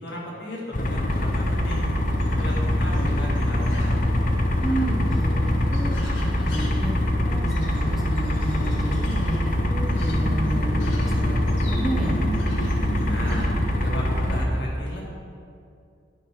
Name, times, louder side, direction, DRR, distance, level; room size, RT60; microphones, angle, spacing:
voice 1, 0.0-1.8 2.4-4.0 13.0-15.0, equal, 65° left, -4 dB, 1.7 m, -34 dB
sound 1, 0.7-14.4, left 1 dB, 45° left, 0.6 m, -24 dB
sound 2, 1.1-13.5, equal, 90° left, 1.2 m, -36 dB
voice 2, 4.5-12.2, right 1 dB, ahead, -5 dB, 0.9 m, -31 dB
9.4 x 3.3 x 6.2 m, 2.4 s
head